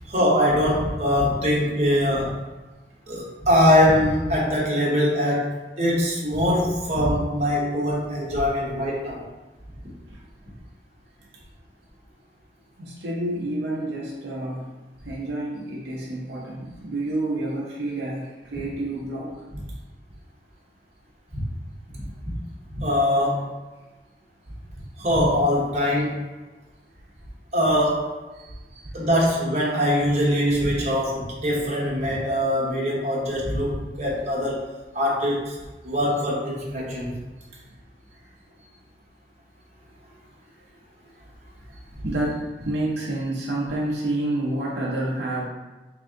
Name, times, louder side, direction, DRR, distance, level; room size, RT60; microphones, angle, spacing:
voice 1, 0.1-2.4 3.1-9.2 21.3-21.4 21.9-22.0 22.7-23.5 25.0-26.2 27.5-28.1 28.9-34.6 34.9-35.6 35.8-37.1, equal, 40° right, -5 dB, 0.9 m, -22 dB
voice 2, 12.8-14.7 15.0-19.3 28.3-28.9 37.5-37.6 38.1-38.2 41.7-45.4, right 1 dB, 75° right, -5 dB, 0.7 m, -29 dB
3.4 x 2.6 x 3.6 m, 1.2 s
head